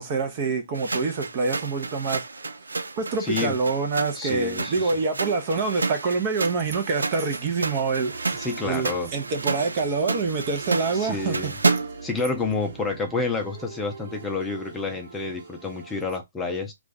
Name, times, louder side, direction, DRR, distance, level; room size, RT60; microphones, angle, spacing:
voice 1, 0.0-2.6 3.0-8.4 8.6-11.5, right 4 dB, 35° right, 0.8 m, -26 dB
sound 1, 0.7-12.1, right 3 dB, 85° right, 0.4 m, -31 dB
voice 2, 3.2-3.5 4.1-4.9 8.3-9.1 10.9-11.6 12.0-16.7, left 3 dB, 10° left, 0.6 m, -29 dB
sound 2, 8.1-16.2, right 4 dB, 55° right, 1.2 m, -42 dB
2.4 x 2.4 x 3.9 m
figure-of-eight pair, 140°, 0 cm